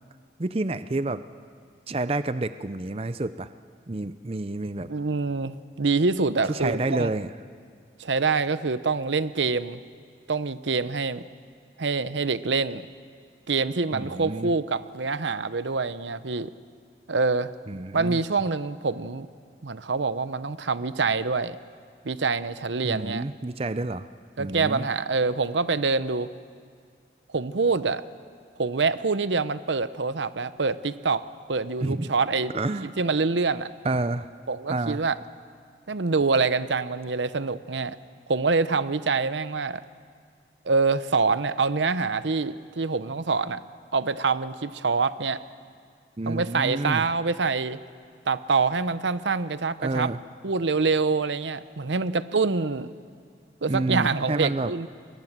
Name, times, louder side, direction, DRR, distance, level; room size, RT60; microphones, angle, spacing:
voice 1, 0.4-1.2 1.9-3.5 3.9-4.9 6.5-7.3 13.9-14.5 17.7-18.2 22.8-24.1 24.4-24.9 31.8-32.1 32.5-32.9 33.8-34.3 34.7-35.0 46.2-47.0 49.8-50.2 53.7-54.7, right 2 dB, 35° right, 12 dB, 0.6 m, -29 dB
voice 2, 4.9-7.1 8.0-9.8 10.3-11.2 11.8-12.9 13.5-16.5 17.1-17.5 17.9-19.3 19.6-21.6 22.0-23.2 24.4-26.3 27.3-28.0 28.6-31.2 31.5-32.5 32.8-33.7 34.5-35.1 35.9-38.0 38.3-39.8 40.6-43.6 43.9-45.4 46.3-47.8 48.3-50.1 50.4-52.9 53.6-54.9, right 4 dB, 85° right, 14 dB, 0.8 m, -25 dB
29.5 x 22.0 x 7.5 m, 2.1 s
head